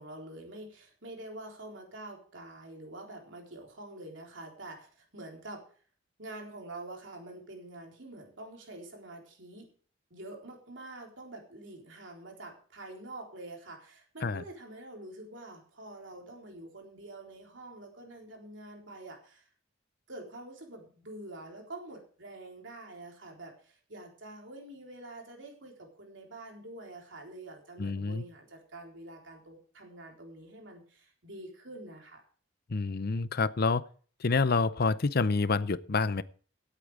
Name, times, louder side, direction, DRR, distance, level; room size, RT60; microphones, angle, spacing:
voice 1, 0.0-5.6 6.2-9.7 10.1-19.5 20.1-32.2, right 2 dB, 60° right, 1 dB, 3.9 m, -46 dB
voice 2, 27.8-28.2 32.7-33.8 34.2-36.2, left 4 dB, 50° left, 17 dB, 0.6 m, -28 dB
16.5 x 8.6 x 4.9 m, 0.44 s
head